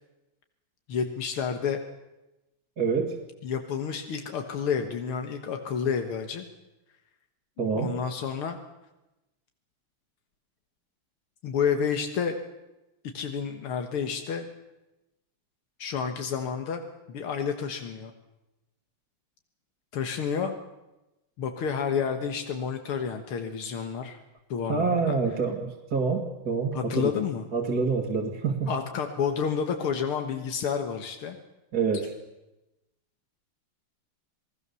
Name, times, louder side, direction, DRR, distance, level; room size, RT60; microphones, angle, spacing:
voice 1, 0.9-1.8 3.4-6.5 7.7-8.6 11.4-12.4 13.1-14.5 15.8-16.8 17.1-18.1 19.9-20.6 21.4-24.2 24.5-25.2 26.7-27.4 28.7-31.4, left 6 dB, 85° left, 5 dB, 2.4 m, -30 dB
voice 2, 2.8-3.2 7.6-7.9 24.7-27.1 27.5-28.7 31.7-32.1, right 5 dB, 45° right, 1 dB, 2.5 m, -27 dB
28.5 x 19.5 x 7.0 m, 1.0 s
omnidirectional pair, 2.3 m